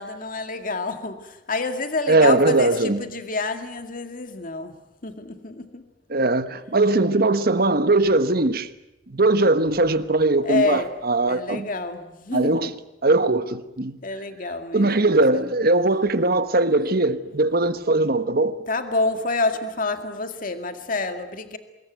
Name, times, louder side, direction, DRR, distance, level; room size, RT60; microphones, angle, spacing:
voice 1, 0.0-4.7 5.0-5.9 10.4-10.9 11.2-12.7 14.0-15.5 18.7-21.6, left 3 dB, 50° left, 2.1 m, -28 dB
voice 2, 2.1-3.0 6.1-8.7 9.1-11.7 12.3-12.7 13.0-14.0 14.7-18.6, right 2 dB, 55° right, 1.4 m, -20 dB
25.5 x 21.5 x 9.3 m
head